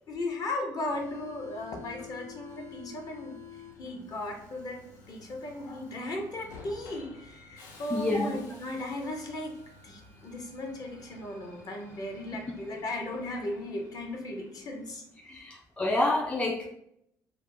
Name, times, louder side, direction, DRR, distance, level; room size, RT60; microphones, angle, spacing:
voice 1, 0.1-3.4 3.8-4.8 5.1-9.5 9.8-15.0, left 1 dB, 45° left, 2 dB, 0.7 m, -36 dB
Subway metro underground, 0.8-15.2, left 5 dB, 80° left, 0.4 m, -51 dB
voice 2, 7.9-8.3 15.2-16.7, left 2 dB, 10° left, 2 dB, 0.3 m, -28 dB
2.3 x 2.0 x 3.7 m, 0.76 s
figure-of-eight pair, 45°, 9 cm